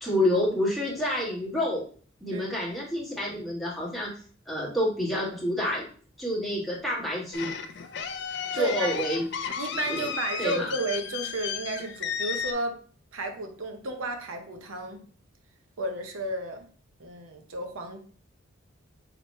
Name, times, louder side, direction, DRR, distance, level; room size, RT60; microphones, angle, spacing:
voice 1, 0.0-1.9 2.2-4.1 4.5-5.9 6.2-7.5 8.5-9.2 9.9-10.1 10.4-10.7, left 1 dB, ahead, -5 dB, 1.3 m, -28 dB
sound 1, 7.3-12.5, left 7 dB, 55° left, 0.4 m, -33 dB
voice 2, 8.3-8.9 9.6-12.8 13.1-15.0 15.8-16.7 17.0-18.0, right 2 dB, 80° right, 5 dB, 0.7 m, -33 dB
5.0 x 3.0 x 3.0 m, 0.44 s
head